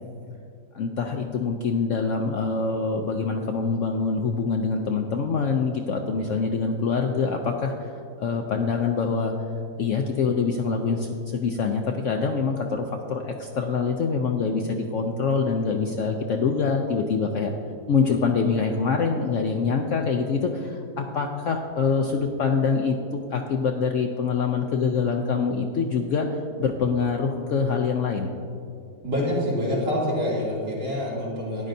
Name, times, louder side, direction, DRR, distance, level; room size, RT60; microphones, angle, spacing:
voice 1, 0.7-9.3 9.8-17.5 17.9-26.3 26.6-28.3, left 5 dB, 70° left, 3 dB, 0.7 m, -25 dB
voice 2, 29.0-31.7, left 1 dB, 85° right, -7 dB, 3.4 m, -26 dB
12.5 x 10.0 x 2.7 m, 2.5 s
omnidirectional pair, 1.8 m